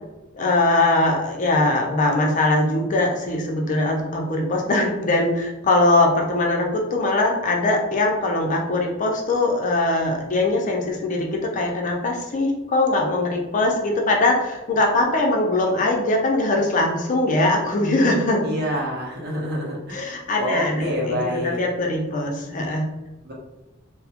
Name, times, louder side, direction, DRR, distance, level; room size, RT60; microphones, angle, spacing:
voice 1, 0.3-18.6 19.9-22.9, left 2 dB, 40° left, 1 dB, 0.4 m, -21 dB
voice 2, 18.4-21.6 23.2-23.3, left 1 dB, 50° right, -4 dB, 0.7 m, -27 dB
2.3 x 2.0 x 2.7 m, 1.0 s
head